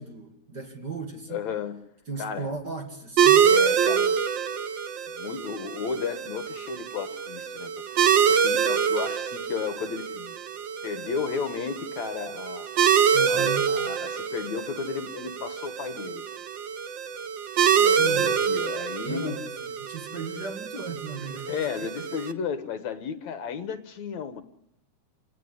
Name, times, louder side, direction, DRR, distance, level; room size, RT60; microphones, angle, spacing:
voice 1, 0.0-1.4 2.1-3.5 13.1-13.7 17.9-18.3 19.0-19.5 19.8-21.7, right 4 dB, 35° right, 2.6 m, -36 dB
voice 2, 1.3-1.8 2.2-2.5 3.4-4.2 5.1-10.3 10.8-12.7 13.3-16.2 17.7-19.4 21.5-24.4, left 6 dB, 65° left, 2.5 m, -34 dB
sound 1, 3.2-22.3, right 7 dB, 70° right, 1.1 m, -25 dB
27.5 x 18.0 x 9.9 m
omnidirectional pair, 3.7 m